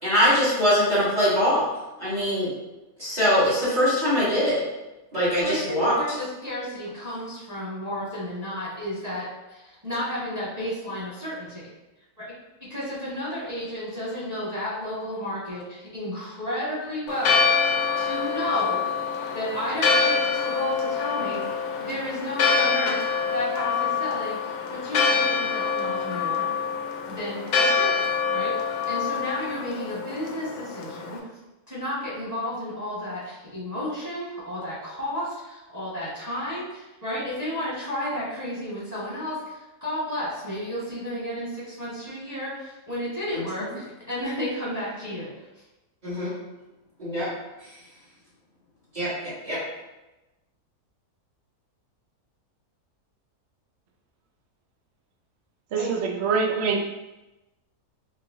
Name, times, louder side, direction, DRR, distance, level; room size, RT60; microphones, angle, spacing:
voice 1, 0.0-1.6 2.0-2.5 3.0-4.6 5.1-5.9 43.3-43.4 46.0-46.3 47.0-47.3 48.9-49.6, equal, 30° right, -10 dB, 1.7 m, -22 dB
voice 2, 5.4-11.6 12.7-17.7 17.9-18.9 19.3-24.5 24.8-26.5 27.1-31.2 31.7-45.3 55.8-55.9, equal, 10° right, -8 dB, 1.3 m, -32 dB
Church bell, 17.1-31.2, left 5 dB, 70° left, 1.0 m, -25 dB
voice 3, 55.7-56.8, right 5 dB, 65° right, 2 dB, 0.6 m, -24 dB
4.5 x 3.2 x 2.7 m, 1.0 s
omnidirectional pair, 1.6 m